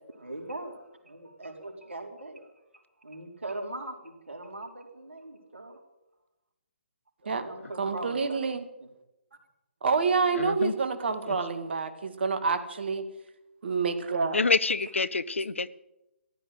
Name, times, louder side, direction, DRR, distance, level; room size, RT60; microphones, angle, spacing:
voice 1, 0.2-2.4 3.0-5.8 7.2-8.4, right 2 dB, 80° right, 3 dB, 4.0 m, -40 dB
voice 2, 7.8-8.6 9.8-13.0 13.6-14.4, right 5 dB, 60° right, 8 dB, 2.1 m, -28 dB
voice 3, 10.3-10.7 11.3-11.4 14.3-15.7, left 4 dB, 80° left, 18 dB, 0.7 m, -27 dB
14.5 x 12.0 x 7.9 m, 0.92 s
figure-of-eight pair, 140°, 7 cm